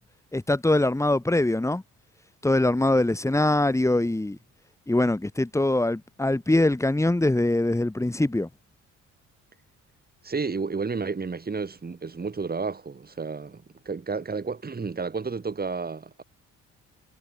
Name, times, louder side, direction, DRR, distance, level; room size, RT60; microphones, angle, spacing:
voice 1, 0.3-1.8 2.4-4.4 4.9-8.5, left 2 dB, 10° left, 2.3 m, -23 dB
voice 2, 10.2-16.2, right 4 dB, 30° right, 7.2 m, -31 dB
cardioid pair, 90°, 30 cm